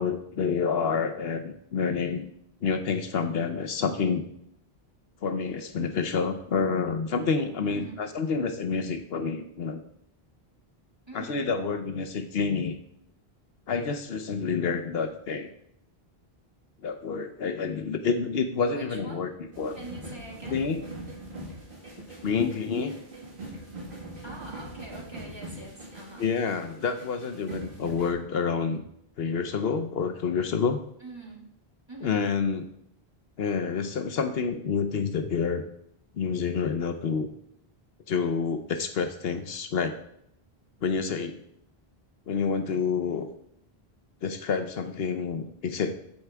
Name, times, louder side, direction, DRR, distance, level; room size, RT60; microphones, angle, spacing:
voice 1, 0.0-2.3 2.6-4.2 5.2-9.8 11.1-12.8 13.7-15.5 16.8-19.8 20.5-20.8 22.2-23.0 26.2-28.8 29.2-30.8 32.0-32.7 33.4-35.7 36.2-37.3 38.1-40.0 40.8-41.4 42.3-43.3 44.2-45.9, left 5 dB, 75° left, 7 dB, 1.0 m, -28 dB
voice 2, 7.6-8.0 11.1-11.5 18.7-19.2 19.7-20.6 24.2-26.3 31.0-31.5 31.9-32.3, right 2 dB, 25° right, -3 dB, 2.0 m, -44 dB
sound 1, 19.5-28.1, right 1 dB, 55° right, 2.0 m, -42 dB
14.0 x 4.6 x 3.4 m, 0.72 s
omnidirectional pair, 1.1 m